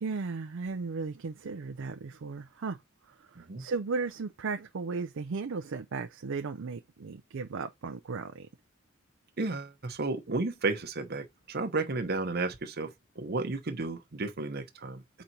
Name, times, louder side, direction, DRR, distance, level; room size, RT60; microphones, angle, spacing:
voice 1, 0.0-2.8 3.1-8.5, right 4 dB, 65° right, 0.5 m, -36 dB
voice 2, 3.4-3.7 9.4-15.0, right 3 dB, 50° right, 0.9 m, -33 dB
5.0 x 4.1 x 4.5 m
head